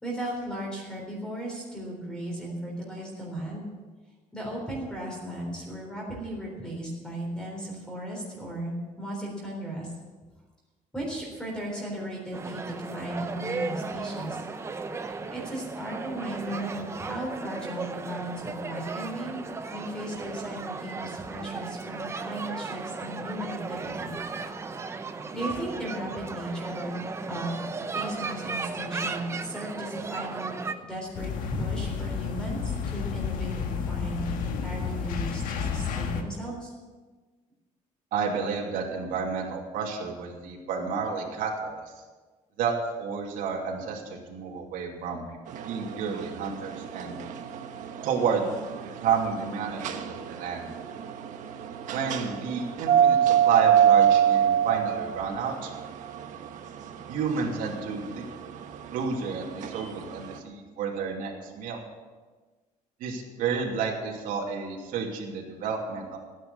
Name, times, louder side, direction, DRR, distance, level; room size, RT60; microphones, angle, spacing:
voice 1, 0.0-3.7 4.3-9.9 10.9-14.5 15.1-24.2 25.3-30.5 30.8-36.7, right 1 dB, 5° left, -3 dB, 3.8 m, -36 dB
sound 1, 12.3-30.7, right 4 dB, 20° right, 0.7 m, -36 dB
sound 2, 31.1-36.2, left 6 dB, 75° left, 1.6 m, -31 dB
voice 2, 38.1-41.8 42.6-45.2 45.6-47.1 48.0-48.5 49.0-50.7 51.9-55.7 57.1-58.2 58.9-61.8 63.0-66.2, right 6 dB, 80° right, -1 dB, 2.7 m, -30 dB
sound 3, 45.5-60.4, right 9 dB, 65° right, 1.3 m, -27 dB
16.0 x 9.3 x 7.1 m, 1.3 s
cardioid pair, 165°, 14 cm